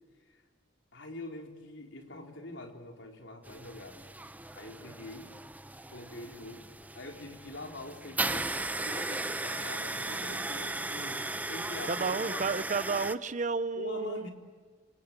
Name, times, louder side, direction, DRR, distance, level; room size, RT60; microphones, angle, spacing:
voice 1, 0.9-4.0 4.5-5.3 5.9-12.6 13.7-14.3, left 2 dB, 85° left, 4.0 m, -45 dB
sound 1, 3.4-13.2, right 2 dB, 10° right, 0.8 m, -36 dB
voice 2, 11.9-14.3, right 4 dB, 45° right, 0.9 m, -32 dB
28.5 x 27.0 x 7.5 m
head